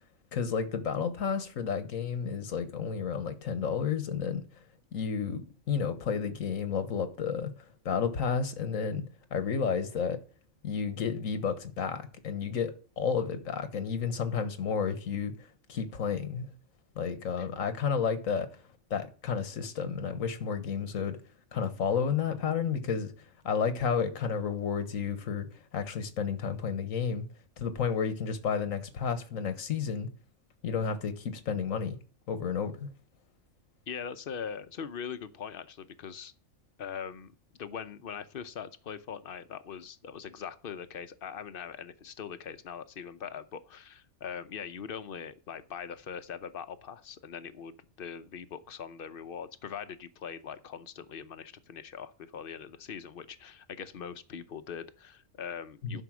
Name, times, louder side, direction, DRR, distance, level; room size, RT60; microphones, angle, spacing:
voice 1, 0.3-4.4 4.9-7.5 7.8-9.0 9.3-10.2 10.6-15.3 15.7-16.5 16.9-18.5 18.9-21.2 21.5-23.1 23.4-25.5 25.7-27.3 27.6-30.1 30.6-32.0 32.3-32.9 55.8-56.0, left 6 dB, 90° left, 1.5 m, -31 dB
voice 2, 33.9-36.3 36.8-56.0, left 7 dB, 50° left, 0.8 m, -41 dB
11.5 x 5.5 x 6.1 m
omnidirectional pair, 1.4 m